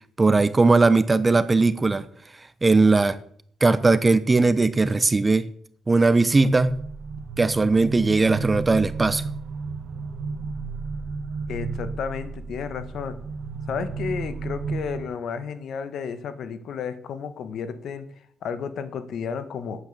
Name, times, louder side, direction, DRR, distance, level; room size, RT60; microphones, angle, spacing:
voice 1, 0.2-2.0 2.6-3.2 3.6-5.5 5.9-6.7 7.4-9.2, right 3 dB, 25° right, 14 dB, 0.8 m, -19 dB
sound 1, 6.3-15.1, right 4 dB, 65° right, 1.1 m, -33 dB
voice 2, 11.5-13.2 13.7-18.1 18.4-19.8, left 6 dB, 70° left, 11 dB, 1.3 m, -32 dB
9.3 x 8.9 x 6.7 m, 0.63 s
cardioid pair, 90°, 0 cm